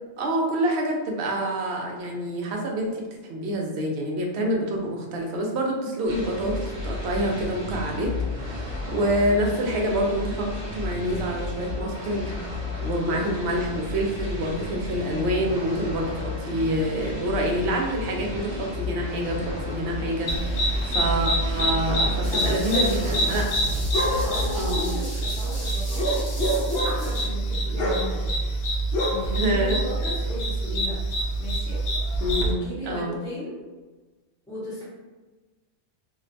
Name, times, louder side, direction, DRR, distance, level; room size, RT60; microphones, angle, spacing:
voice 1, 0.2-23.4 24.5-24.9 29.4-29.8 32.2-32.5 32.9-33.2, right 1 dB, 75° right, 0 dB, 0.8 m, -27 dB
sound 1, 6.1-25.1, left 3 dB, 30° right, 1.0 m, -33 dB
sound 2, 20.3-32.5, right 1 dB, 70° left, 0.8 m, -25 dB
sound 3, 22.2-27.2, equal, 30° left, 0.9 m, -39 dB
voice 2, 22.3-23.4 23.9-26.3 26.8-28.3 29.1-31.0 31.4-31.8 32.4-33.6 34.5-34.9, equal, 5° left, -10 dB, 0.7 m, -36 dB
2.5 x 2.1 x 2.5 m, 1.3 s
omnidirectional pair, 1.1 m